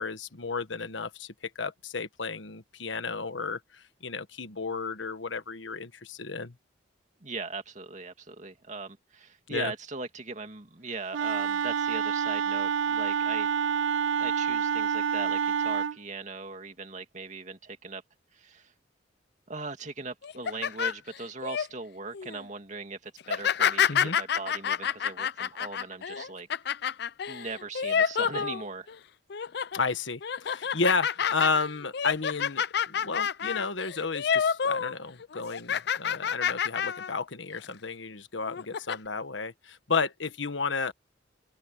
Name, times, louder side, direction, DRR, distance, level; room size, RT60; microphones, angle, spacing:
voice 1, 0.0-6.5 9.5-9.7 23.9-24.2 29.7-40.9, left 4 dB, 85° left, 1.4 m, -32 dB
voice 2, 7.2-13.5 14.2-18.0 18.3-18.7 19.5-26.5 27.3-28.9, right 3 dB, 40° right, 2.3 m, -39 dB
Wind instrument woodwind instrument, 11.1-16.0, right 7 dB, 85° right, 0.4 m, -28 dB
sound 1, 20.2-21.7 22.1-22.4 23.2-28.9 29.3-29.8 30.2-34.9 35.2-37.1 37.5-37.7 38.4-38.9, left 7 dB, 60° left, 0.5 m, -29 dB
head